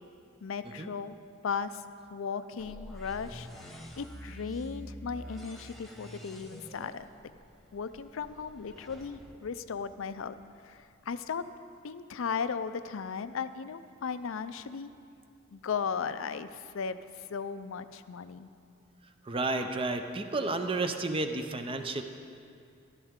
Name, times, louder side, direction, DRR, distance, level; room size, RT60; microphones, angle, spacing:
voice 1, 0.4-1.2 1.4-1.8 2.1-7.1 7.7-10.3 10.6-11.4 11.8-14.9 15.5-18.5, left 6 dB, 75° left, 12 dB, 0.5 m, -36 dB
sound 1, 2.6-10.5, equal, ahead, 0.9 m, -47 dB
voice 2, 19.3-22.0, right 2 dB, 25° right, 6 dB, 0.6 m, -31 dB
13.5 x 12.5 x 3.7 m, 2.4 s
head